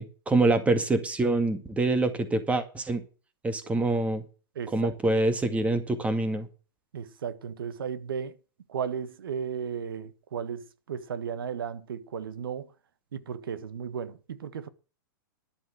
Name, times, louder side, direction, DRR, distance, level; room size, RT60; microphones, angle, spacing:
voice 1, 0.0-3.0 3.4-4.2 4.7-6.5, right 2 dB, 10° right, 2.1 m, -25 dB
voice 2, 4.5-4.9 6.9-8.3 8.7-12.7 13.1-14.7, right 7 dB, 80° right, 1.4 m, -35 dB
11.5 x 7.8 x 6.5 m
hypercardioid pair, 130°, 12 cm